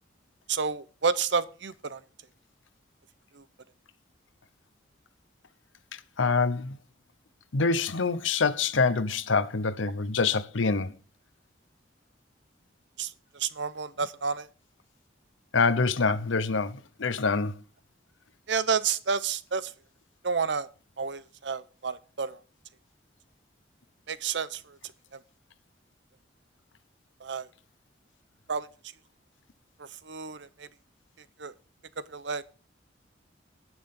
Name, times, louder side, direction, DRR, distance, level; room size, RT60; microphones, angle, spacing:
voice 1, 0.5-2.0 13.0-14.5 18.5-19.7 20.2-20.7 21.0-22.4 24.1-24.6 27.2-27.5 28.5-28.7 30.1-30.7 31.4-31.5 32.1-32.4, right 5 dB, 70° right, 0.7 m, -30 dB
voice 2, 6.2-6.8 7.5-10.9 15.5-17.6, left 4 dB, 85° left, 0.9 m, -25 dB
18.5 x 6.3 x 3.7 m
head